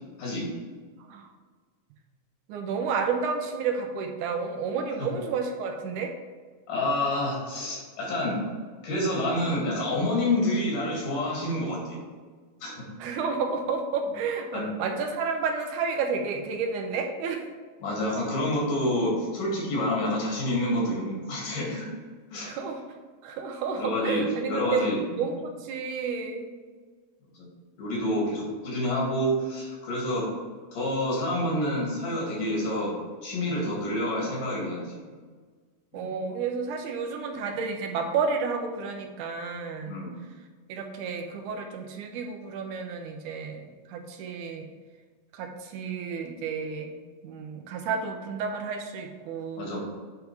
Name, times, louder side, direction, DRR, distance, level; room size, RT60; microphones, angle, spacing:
voice 1, 0.2-0.5 6.7-8.4 8.8-12.0 12.6-12.8 14.5-14.7 17.8-21.9 22.3-22.5 23.8-25.3 27.4-27.5 27.8-30.3 30.7-32.9 33.2-35.0 35.9-36.1 39.9-40.1 49.6-49.8, left 1 dB, 90° left, -3 dB, 3.8 m, -28 dB
voice 2, 1.0-1.3 2.5-6.1 13.0-17.5 22.5-22.8 23.2-26.5 35.9-40.0 40.7-44.7 45.3-46.9 47.2-49.8, right 5 dB, 85° right, 4 dB, 2.2 m, -31 dB
9.3 x 3.6 x 4.6 m, 1.5 s
omnidirectional pair, 3.6 m